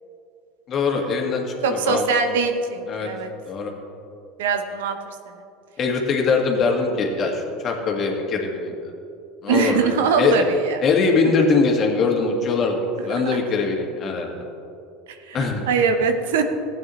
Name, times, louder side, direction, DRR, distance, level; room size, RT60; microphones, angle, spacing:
voice 1, 0.7-1.4 1.7-2.0 2.9-3.1 3.4-3.7 5.8-8.7 9.4-10.4 10.8-14.4 15.3-15.6, left 4 dB, 45° left, 1 dB, 1.7 m, -22 dB
voice 2, 1.6-3.3 4.4-5.1 9.5-10.8 13.1-13.4 15.3-15.4 15.7-16.4, right 5 dB, 80° right, 7 dB, 0.8 m, -22 dB
15.5 x 8.5 x 3.1 m, 2.7 s
hypercardioid pair, 80°, 0 cm